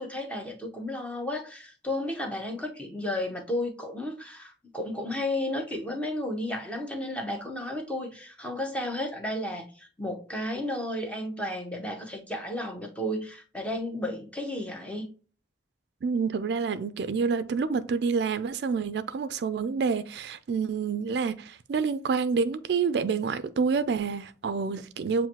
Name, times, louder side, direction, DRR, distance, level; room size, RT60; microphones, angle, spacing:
voice 1, 0.0-15.1, left 1 dB, 5° left, 0.8 m, -33 dB
voice 2, 16.0-25.3, right 5 dB, 65° right, 0.4 m, -28 dB
7.3 x 2.6 x 2.8 m
head